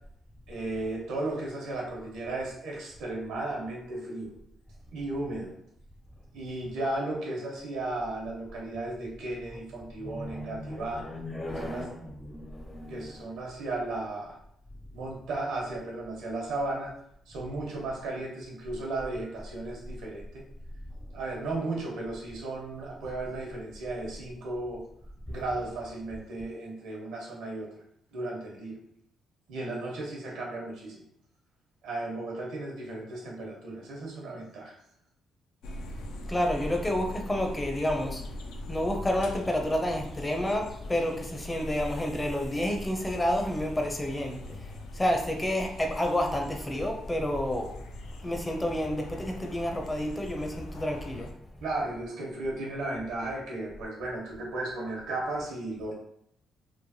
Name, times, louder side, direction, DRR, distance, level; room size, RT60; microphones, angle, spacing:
voice 1, 0.5-4.3 4.9-5.5 6.3-11.1 11.5-11.9 12.9-14.4 14.9-16.9 17.3-20.4 21.1-24.8 25.3-27.7 28.1-28.8 29.5-31.0 31.8-34.8 51.6-55.9, right 2 dB, 90° right, -2 dB, 0.9 m, -35 dB
voice 2, 10.0-13.3 36.2-38.2 38.7-48.0 48.2-51.3, left 1 dB, 15° left, 2 dB, 0.5 m, -30 dB
sound 1, 35.6-51.3, left 1 dB, 90° left, 0.3 m, -42 dB
3.1 x 2.1 x 2.7 m, 0.71 s
cardioid pair, 90°, 0 cm